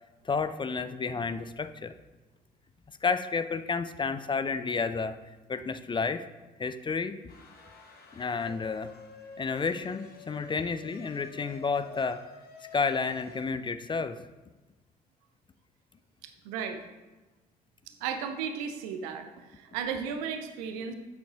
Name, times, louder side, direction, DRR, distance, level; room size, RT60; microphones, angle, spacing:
voice 1, 0.3-1.9 3.0-5.2 5.5-6.3 6.6-7.2 8.1-8.9 9.4-12.2 12.7-14.2, left 5 dB, 25° left, 11 dB, 0.4 m, -31 dB
sound 1, 7.3-13.5, left 4 dB, 50° left, 1.1 m, -49 dB
voice 2, 16.2-16.9 17.9-20.9, right 7 dB, 70° right, 7 dB, 0.6 m, -35 dB
7.4 x 7.1 x 2.9 m, 1.2 s
figure-of-eight pair, 40°, 20 cm